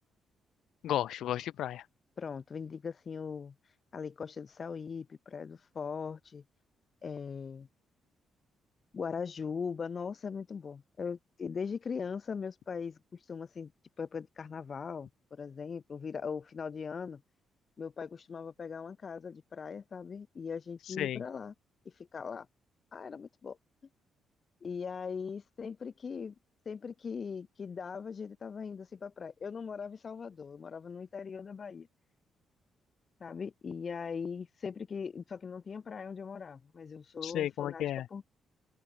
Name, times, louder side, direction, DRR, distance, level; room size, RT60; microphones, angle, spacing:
voice 1, 0.8-1.8 21.0-21.2 37.2-38.0, left 12 dB, 75° left, 2.1 m, -33 dB
voice 2, 2.2-3.5 3.9-6.4 7.0-7.7 8.9-13.7 14.0-17.2 17.8-21.5 21.8-22.5 22.9-23.6 24.6-26.3 26.6-31.9 33.2-37.8 38.1-38.3, left 6 dB, 35° left, 1.2 m, -40 dB
open air
cardioid pair, 160°, 0 cm